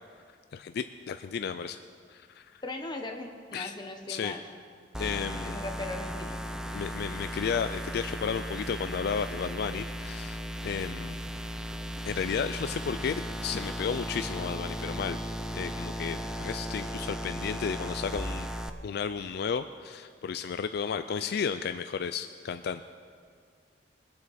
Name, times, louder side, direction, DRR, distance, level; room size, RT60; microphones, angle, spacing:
voice 1, 0.5-1.8 2.1-2.6 3.5-3.7 4.1-4.3 5.0-5.6 6.7-11.2 12.1-15.2 15.5-18.5 18.8-22.8, left 6 dB, 60° left, 10 dB, 0.3 m, -33 dB
voice 2, 2.6-4.4 5.4-6.4, left 2 dB, 25° left, 4 dB, 1.1 m, -38 dB
sound 1, 4.9-18.7, equal, 5° right, 0.5 m, -36 dB
21.5 x 7.6 x 4.2 m, 2.1 s
head